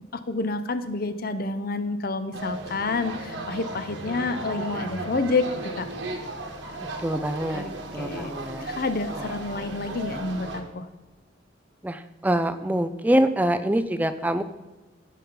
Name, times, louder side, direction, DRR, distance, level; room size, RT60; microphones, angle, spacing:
voice 1, 0.1-5.5 5.8-5.9 7.5-8.3 8.6-10.9, left 3 dB, 50° left, 10 dB, 0.8 m, -29 dB
sound 1, 2.3-10.6, right 2 dB, 80° right, 1.6 m, -35 dB
voice 2, 7.0-7.6 7.9-8.7 11.8-14.4, right 1 dB, 10° right, 10 dB, 0.4 m, -25 dB
16.5 x 5.6 x 3.8 m, 1.2 s
head